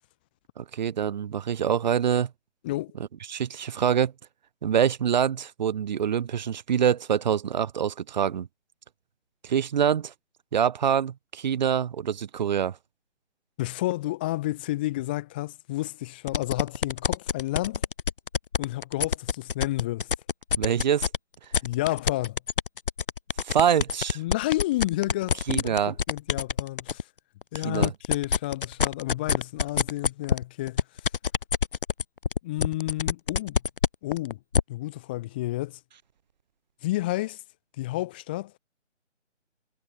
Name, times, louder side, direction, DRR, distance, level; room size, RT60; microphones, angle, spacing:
voice 1, 0.6-2.3 3.3-4.1 4.6-8.5 9.4-10.1 10.5-12.8 20.6-21.1 23.4-24.2 25.5-25.9 27.6-27.9, right 8 dB, 35° right, 5.1 m, -25 dB
voice 2, 2.6-2.9 13.6-17.8 18.6-20.1 21.6-22.4 24.2-27.0 27.5-30.8 32.4-33.6 34.0-34.4 34.7-35.8 36.8-37.4 37.8-38.6, left 17 dB, 10° left, 0.8 m, -30 dB
sound 1, 16.3-21.2 21.5-27.0 27.4-34.6, left 6 dB, 45° left, 1.5 m, -25 dB
figure-of-eight pair, 145°, 36 cm